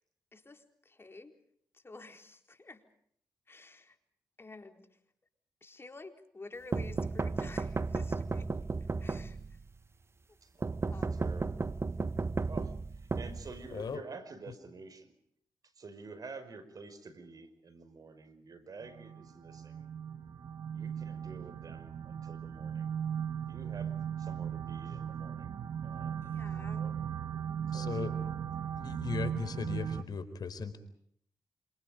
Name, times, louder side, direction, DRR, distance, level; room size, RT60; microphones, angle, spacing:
voice 1, 0.3-1.4 1.7-2.8 3.5-4.0 4.4-4.9 5.6-8.5 9.0-9.6 10.3-11.3 26.2-26.9, left 3 dB, 30° left, 6 dB, 4.4 m, -51 dB
sound 1, 6.7-9.7 10.6-13.9, right 3 dB, 35° right, 1.2 m, -34 dB
voice 2, 10.4-11.7 12.4-15.1 15.8-19.9 20.7-23.0 23.5-23.9 24.2-26.4 26.8-26.9 27.7-28.3, right 4 dB, 55° right, 12 dB, 5.5 m, -49 dB
voice 3, 13.7-14.0 27.7-28.1 28.7-30.8, left 5 dB, 65° left, 11 dB, 4.3 m, -37 dB
sound 2, 18.8-30.0, right 8 dB, 70° right, 1.6 m, -37 dB
28.5 x 26.5 x 5.2 m, 0.67 s
supercardioid pair, 50°, 7 cm